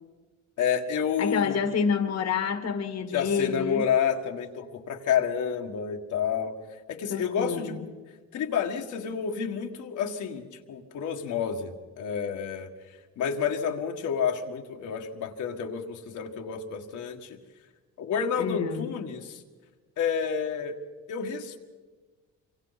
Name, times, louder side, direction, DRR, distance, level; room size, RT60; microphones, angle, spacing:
voice 1, 0.6-1.6 3.1-6.5 6.9-7.8 8.3-12.7 13.2-17.4 18.0-19.4 20.0-20.7 21.1-21.6, left 7 dB, 80° left, 2 dB, 1.8 m, -29 dB
voice 2, 1.2-3.8 7.1-7.9 18.4-18.9, left 6 dB, 60° left, 8 dB, 1.6 m, -28 dB
27.0 x 24.0 x 4.1 m, 1.3 s
cardioid pair, 90°, 30 cm